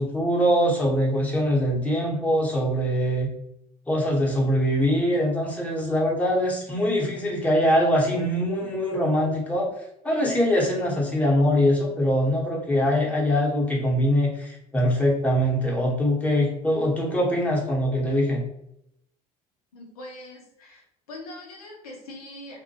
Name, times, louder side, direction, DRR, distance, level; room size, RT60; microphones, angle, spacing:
voice 1, 0.0-3.3 3.9-9.7 10.0-18.4, equal, 5° left, -3 dB, 0.9 m, -23 dB
voice 2, 19.7-22.6, left 1 dB, 85° left, -1 dB, 0.6 m, -42 dB
2.1 x 2.1 x 2.7 m, 0.77 s
hypercardioid pair, 65°, 19 cm